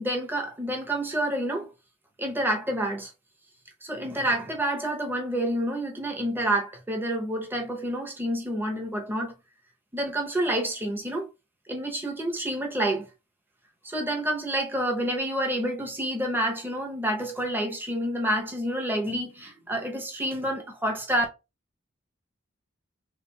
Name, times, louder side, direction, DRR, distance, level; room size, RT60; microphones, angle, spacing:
voice 1, 0.0-1.7 2.2-3.1 3.8-9.3 9.9-11.3 11.7-13.1 13.8-21.2, right 1 dB, 10° right, 0.7 m, -28 dB
3.3 x 2.8 x 2.2 m
head